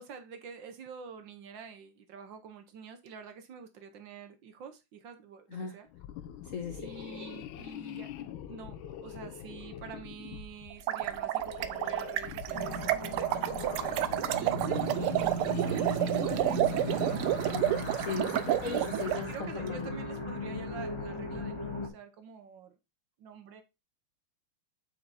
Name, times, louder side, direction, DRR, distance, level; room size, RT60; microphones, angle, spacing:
voice 1, 0.0-5.9 6.8-13.5 14.3-17.2 18.6-18.9 19.1-22.8 23.2-23.6, right 6 dB, 65° right, 1.5 m, -46 dB
sound 1, 5.9-18.4, left 11 dB, 75° left, 1.4 m, -44 dB
voice 2, 6.5-6.8 17.5-19.9, left 6 dB, 50° left, 1.0 m, -38 dB
sound 2, 10.7-19.2, right 13 dB, 85° right, 1.5 m, -30 dB
sound 3, 12.5-21.9, equal, 15° left, 1.2 m, -37 dB
7.8 x 4.7 x 4.0 m
omnidirectional pair, 2.4 m